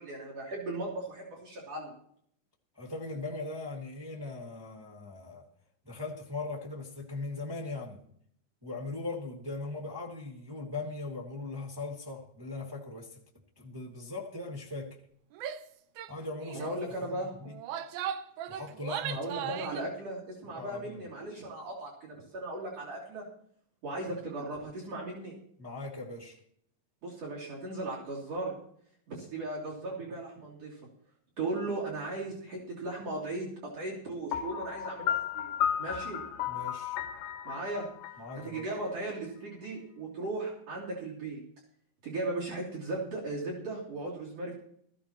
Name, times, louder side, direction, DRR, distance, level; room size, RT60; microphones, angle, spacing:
voice 1, 0.0-1.9 16.5-17.3 19.1-23.2 23.8-25.3 27.0-28.5 29.1-30.8 31.4-35.5 35.8-36.2 37.4-37.9 38.4-41.4 42.0-44.5, right 2 dB, 50° right, 4.1 m, -37 dB
voice 2, 2.7-5.5 5.8-8.0 8.6-13.2 13.6-15.0 16.1-16.7 17.0-17.1 17.4-17.6 18.5-19.7 20.5-21.0 25.6-26.4 36.5-37.0 38.2-38.6, left 3 dB, 30° right, 0.4 m, -39 dB
Female speech woman speaking / Yell, 15.4-15.7 16.0-16.1 16.4-16.7 17.4-19.9, right 10 dB, 80° right, 2.0 m, -37 dB
Piano, 34.3-39.2, left 9 dB, 80° left, 2.2 m, -34 dB
17.5 x 15.0 x 3.0 m
omnidirectional pair, 3.9 m